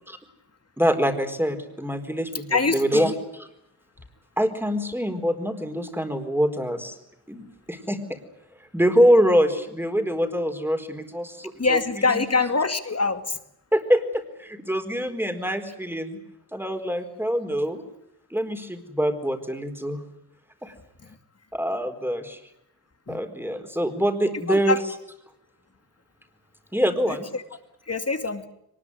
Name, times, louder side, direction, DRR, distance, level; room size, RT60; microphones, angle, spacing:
voice 1, 0.8-3.5 4.4-7.0 7.3-8.2 8.7-11.8 12.1-12.2 13.7-16.2 16.5-17.8 18.3-20.0 20.6-20.7 21.5-22.4 23.1-24.8 26.7-27.3, equal, 5° right, 7 dB, 4.3 m, -24 dB
voice 2, 2.5-3.1 11.6-13.4 15.5-15.6 23.1-23.2 24.5-24.8 27.1-27.4 27.9-28.5, left 4 dB, 40° left, 8 dB, 2.5 m, -24 dB
23.5 x 20.5 x 9.8 m, 0.81 s
wide cardioid pair, 65°, 38 cm